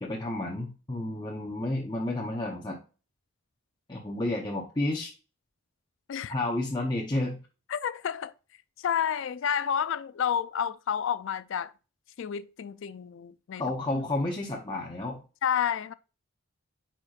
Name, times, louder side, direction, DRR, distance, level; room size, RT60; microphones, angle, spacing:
voice 1, 0.0-2.8 3.9-5.1 6.3-7.4 13.6-15.2, left 2 dB, 20° left, 0.7 m, -31 dB
voice 2, 7.7-8.3 8.8-11.7 12.2-13.6 15.4-15.9, left 8 dB, 55° left, 0.3 m, -30 dB
9.5 x 4.4 x 2.4 m
head